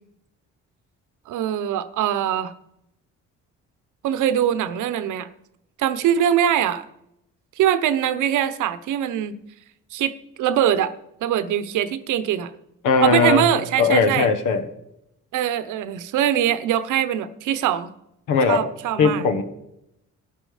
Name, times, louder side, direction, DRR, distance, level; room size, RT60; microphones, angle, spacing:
voice 1, 1.3-2.5 4.0-5.3 5.8-6.9 7.6-9.3 9.9-10.9 11.2-12.5 13.0-14.3 15.3-17.9 18.5-19.3, right 10 dB, 85° right, 13 dB, 0.9 m, -22 dB
voice 2, 12.8-13.5 13.8-14.6 18.3-18.7 19.0-19.4, left 4 dB, 90° left, 9 dB, 1.4 m, -19 dB
12.5 x 9.9 x 5.0 m, 0.82 s
cardioid pair, 90°, 30 cm